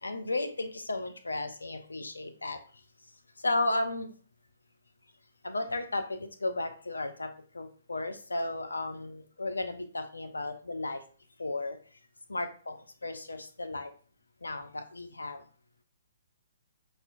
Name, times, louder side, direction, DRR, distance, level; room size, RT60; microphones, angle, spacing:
voice 1, 0.0-2.6 3.4-4.1 5.4-11.0 11.4-11.8 12.3-12.5 13.0-13.9 14.4-15.4, left 2 dB, 85° left, 8 dB, 0.5 m, -34 dB
5.4 x 2.4 x 2.4 m, 0.41 s
figure-of-eight pair, 125°, 0 cm